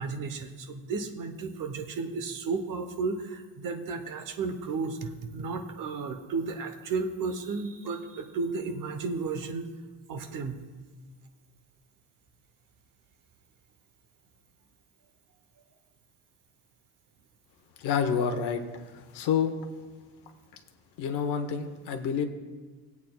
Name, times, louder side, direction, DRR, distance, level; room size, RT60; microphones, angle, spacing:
voice 1, 0.0-9.7 10.1-10.6, right 4 dB, 50° right, 6 dB, 0.9 m, -33 dB
voice 2, 17.8-18.6 19.1-19.5 21.0-22.2, left 7 dB, 70° left, 5 dB, 0.9 m, -28 dB
21.0 x 8.3 x 2.3 m, 1.4 s
cardioid pair, 170°, 42 cm